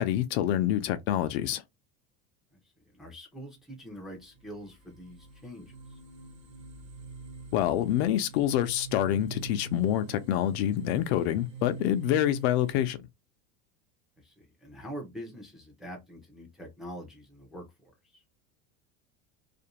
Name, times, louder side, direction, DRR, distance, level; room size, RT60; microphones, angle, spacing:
voice 1, 0.0-1.6 7.5-13.0, left 12 dB, 75° left, 0.6 m, -27 dB
voice 2, 2.9-6.0 14.2-18.2, equal, ahead, 0.4 m, -44 dB
sound 1, 3.9-4.0 4.3-12.8, right 5 dB, 35° right, 0.8 m, -45 dB
2.5 x 2.1 x 2.8 m
cardioid pair, 170°, 32 cm